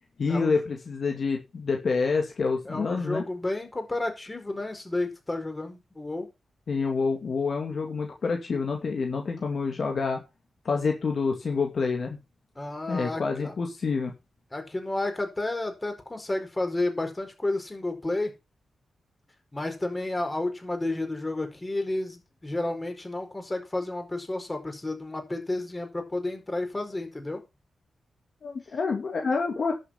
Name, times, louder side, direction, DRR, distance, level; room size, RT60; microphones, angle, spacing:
voice 1, 0.2-3.2 6.7-10.2 10.6-12.2 12.9-14.1 28.4-29.7, left 4 dB, 65° left, 3 dB, 2.3 m, -27 dB
voice 2, 2.6-6.3 12.6-13.5 14.5-18.3 19.5-27.4, left 2 dB, 25° left, 5 dB, 4.8 m, -31 dB
11.0 x 7.0 x 5.8 m, 0.26 s
supercardioid pair, 45°, 0 cm